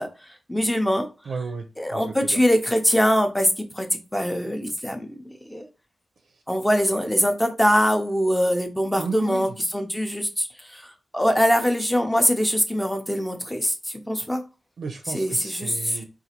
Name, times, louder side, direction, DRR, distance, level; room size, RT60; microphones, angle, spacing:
voice 1, 0.0-1.1 1.8-5.1 5.5-5.7 6.5-14.4 15.1-16.0, equal, 5° left, 0.5 m, -23 dB
voice 2, 1.3-2.4 9.0-9.5 14.8-16.0, right 4 dB, 80° right, 0.5 m, -33 dB
4.0 x 2.4 x 2.8 m
wide cardioid pair, 180°, 0 cm